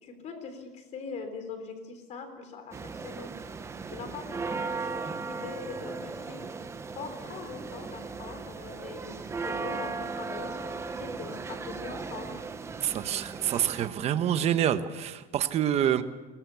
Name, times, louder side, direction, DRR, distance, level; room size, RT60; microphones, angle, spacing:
voice 1, 0.0-3.3 3.9-6.4 7.0-12.4, left 5 dB, 35° left, 8 dB, 3.7 m, -42 dB
sound 1, 2.7-13.9, right 4 dB, 15° right, 0.8 m, -37 dB
voice 2, 12.8-16.0, right 10 dB, 35° right, 10 dB, 1.1 m, -27 dB
22.5 x 19.0 x 7.0 m, 1.2 s
cardioid pair, 170°, 19 cm